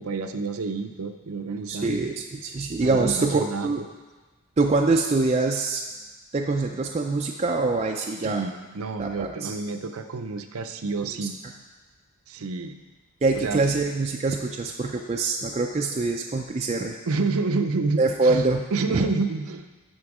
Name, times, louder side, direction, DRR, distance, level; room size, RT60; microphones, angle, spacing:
voice 1, 0.0-2.0 2.8-3.9 8.2-11.4 12.3-12.8 13.4-13.6 17.1-19.7, right 3 dB, 75° right, 8 dB, 0.6 m, -29 dB
voice 2, 1.7-3.8 4.6-5.8 6.3-8.4 9.0-9.5 11.2-11.3 13.2-17.0 18.0-18.6 18.9-19.1, right 3 dB, 30° right, 2 dB, 0.4 m, -24 dB
11.0 x 4.4 x 4.8 m, 1.3 s
head